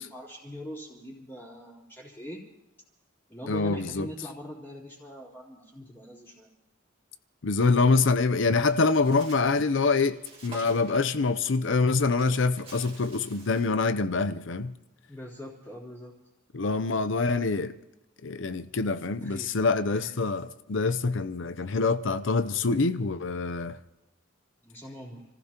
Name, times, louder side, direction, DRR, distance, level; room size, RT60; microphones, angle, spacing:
voice 1, 0.0-2.4 3.3-6.5 15.1-16.1 19.2-19.5 19.9-20.2 24.6-25.3, equal, 10° left, 3.5 m, -42 dB
voice 2, 3.5-4.1 7.4-10.2 10.4-14.7 16.5-17.7 18.2-23.8, left 3 dB, 65° left, 0.7 m, -25 dB
Bird, 8.7-13.8, right 2 dB, 30° right, 2.5 m, -50 dB
29.5 x 15.0 x 2.9 m
head